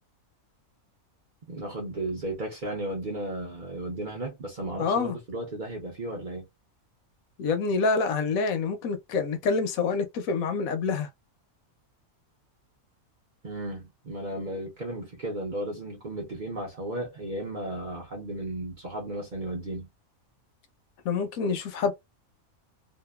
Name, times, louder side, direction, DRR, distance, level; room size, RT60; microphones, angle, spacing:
voice 1, 1.5-6.5 13.4-19.9, right 1 dB, 45° right, 0.7 m, -34 dB
voice 2, 4.8-5.2 7.4-11.1 21.0-21.9, left 4 dB, 75° left, 1.0 m, -27 dB
2.8 x 2.2 x 2.2 m
omnidirectional pair, 1.5 m